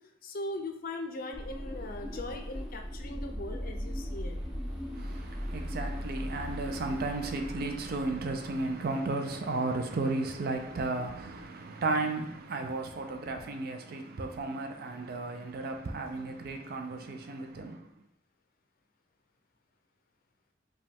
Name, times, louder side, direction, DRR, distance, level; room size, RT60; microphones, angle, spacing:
voice 1, 0.2-4.4, left 2 dB, 50° left, 0.5 m, -39 dB
sound 1, 1.3-8.7, equal, ahead, 0.8 m, -38 dB
voice 2, 4.9-17.9, right 3 dB, 55° right, 0.4 m, -34 dB
5.0 x 2.3 x 3.5 m
head